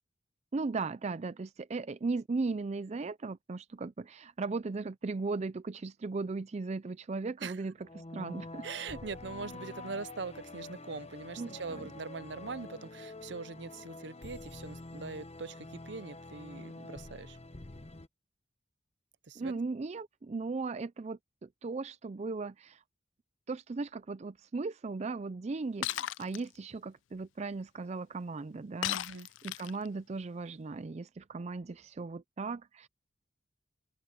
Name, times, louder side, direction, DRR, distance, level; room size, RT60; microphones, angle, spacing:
voice 1, 0.5-8.7 11.4-11.8 19.4-22.8 23.5-32.9, right 3 dB, 35° right, 0.4 m, -37 dB
sound 1, 7.8-18.1, left 2 dB, 35° left, 1.0 m, -47 dB
voice 2, 8.6-17.4 19.3-19.5 28.9-29.3, right 4 dB, 65° right, 0.7 m, -42 dB
Shatter, 25.8-26.4 28.8-29.9, left 13 dB, 80° left, 0.3 m, -35 dB
open air
head